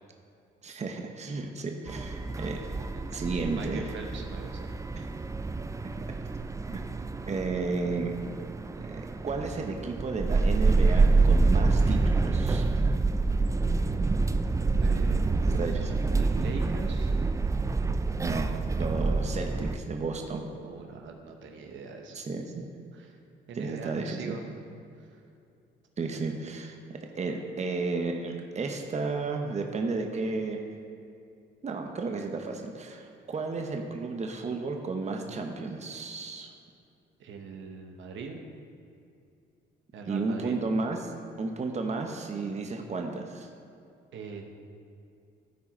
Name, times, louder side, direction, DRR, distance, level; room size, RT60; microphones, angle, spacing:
voice 1, 0.6-2.6 3.1-3.9 5.0-5.1 6.7-6.8 7.3-8.1 8.8-12.6 15.4-16.0 18.2-20.5 22.1-22.7 23.5-24.4 26.0-26.7 27.1-30.6 31.6-36.5 40.1-41.1 41.4-43.5, right 3 dB, 35° right, 3 dB, 0.9 m, -33 dB
sound 1, 1.9-19.8, right 3 dB, 15° right, 0.4 m, -27 dB
voice 2, 2.5-3.1 3.4-4.7 14.8-15.9 16.2-17.1 20.6-22.2 22.9-23.2 23.5-24.5 26.1-26.2 37.2-38.4 39.9-40.6 44.1-44.4, right 4 dB, 75° right, 3 dB, 1.0 m, -42 dB
14.0 x 4.7 x 4.3 m, 2.5 s
cardioid pair, 90°, 20 cm